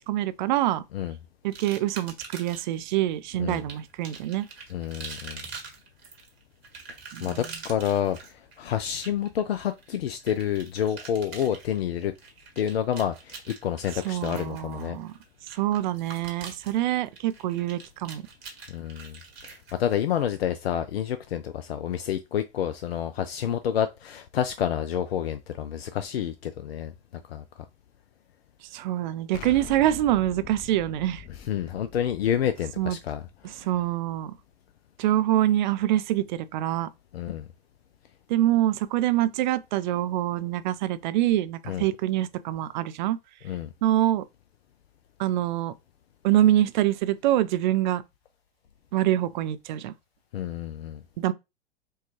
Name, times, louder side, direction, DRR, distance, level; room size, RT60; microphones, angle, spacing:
voice 1, 0.1-0.8 1.4-4.5 7.1-7.5 14.0-15.1 15.5-18.2 28.7-31.2 32.8-33.0 33.4-34.3 35.0-36.9 38.3-43.2 43.8-44.2 45.2-45.7 46.2-48.0 48.9-49.9 51.2-51.3, right 13 dB, 50° right, 0.4 m, -25 dB
sound 1, 1.5-2.8 3.5-20.4, right 5 dB, 75° right, 1.5 m, -44 dB
voice 2, 4.7-5.4 7.2-8.2 8.6-12.1 12.6-15.0 18.7-19.2 19.8-26.9 27.3-27.4 31.5-33.2 37.1-37.5 41.7-41.8 43.4-43.7 50.3-51.0, left 9 dB, 75° left, 0.5 m, -28 dB
Explosion, 29.3-34.2, left 9 dB, 30° left, 0.7 m, -45 dB
4.5 x 2.3 x 3.0 m
figure-of-eight pair, 100°, 31 cm